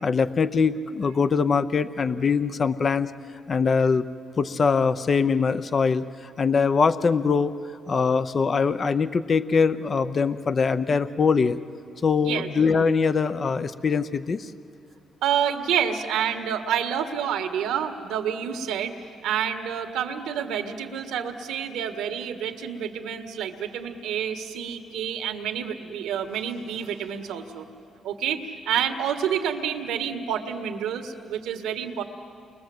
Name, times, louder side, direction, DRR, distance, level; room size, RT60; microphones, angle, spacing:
voice 1, 0.0-3.1 3.5-4.0 4.4-7.5 7.9-11.6 12.0-14.5, left 5 dB, 40° left, 12 dB, 0.7 m, -22 dB
voice 2, 15.2-18.9 19.2-27.7 28.0-32.0, right 8 dB, 90° right, 6 dB, 1.7 m, -28 dB
29.0 x 22.0 x 7.9 m, 2.3 s
cardioid pair, 90°, 0 cm